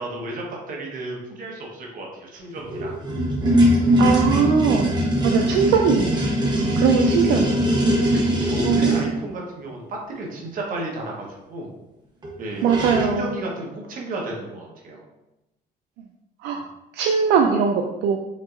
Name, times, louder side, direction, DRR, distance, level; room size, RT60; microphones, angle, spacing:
voice 1, 0.0-3.0 8.1-11.7 12.4-15.0, right 2 dB, 55° right, -1 dB, 1.1 m, -33 dB
sound 1, 2.6-9.1 12.2-12.3 12.6-13.2, equal, 25° right, 1.0 m, -21 dB
voice 2, 4.0-4.9 5.2-7.7 8.0-8.1 8.6-9.2 12.6-13.3 16.4-16.6 16.9-18.2, right 6 dB, 80° right, 3 dB, 0.4 m, -21 dB
5.2 x 2.8 x 2.5 m, 0.96 s
cardioid pair, 110°, 17 cm